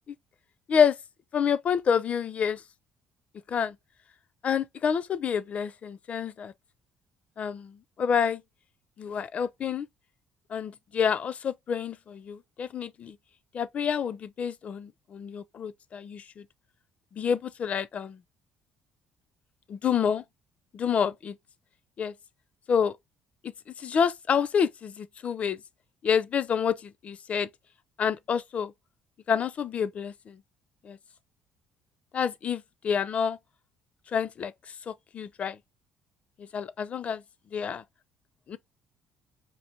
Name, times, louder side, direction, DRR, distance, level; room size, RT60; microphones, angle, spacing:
voice 1, 1.3-2.6 3.5-3.8 4.4-6.5 7.4-8.4 9.0-9.9 10.5-13.2 13.5-16.5 17.1-18.2 19.7-20.2 20.7-21.4 22.0-22.1 22.7-23.0 23.8-25.6 26.0-27.5 28.0-28.7 29.3-30.4 30.8-31.0 32.1-33.4 34.1-34.5 34.9-35.6 36.4-37.2 37.5-37.8 38.5-38.6, left 7 dB, 50° left, 0.4 m, -28 dB
4.6 x 2.5 x 2.7 m
supercardioid pair, 70°, 3 cm